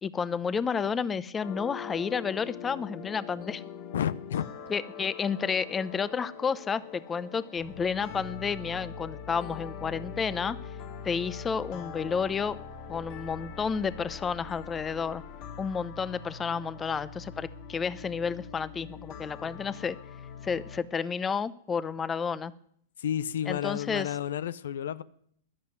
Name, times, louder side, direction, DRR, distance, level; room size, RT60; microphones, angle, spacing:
voice 1, 0.0-3.6 4.7-10.6 11.0-12.6 12.9-15.2 15.6-20.0 20.4-22.5 23.5-24.1, left 6 dB, 20° left, 17 dB, 0.8 m, -31 dB
sound 1, 1.4-20.8, left 6 dB, 50° left, 3.3 m, -43 dB
voice 2, 3.9-4.5 23.0-25.0, left 10 dB, 70° left, 18 dB, 0.6 m, -31 dB
13.0 x 11.0 x 9.2 m, 0.67 s
hypercardioid pair, 105°, 0 cm